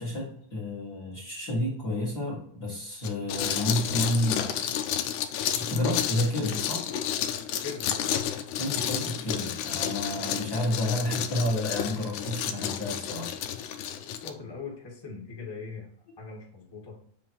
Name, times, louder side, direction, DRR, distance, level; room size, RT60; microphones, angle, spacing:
voice 1, 0.0-4.6 5.6-6.9 8.6-13.3, left 1 dB, 40° left, -4 dB, 1.7 m, -30 dB
sound 1, 3.0-14.3, left 10 dB, 85° left, 2.1 m, -31 dB
voice 2, 7.6-8.1 14.0-15.9 16.2-17.0, left 5 dB, 10° left, -3 dB, 1.2 m, -40 dB
7.5 x 3.7 x 4.5 m, 0.64 s
omnidirectional pair, 3.6 m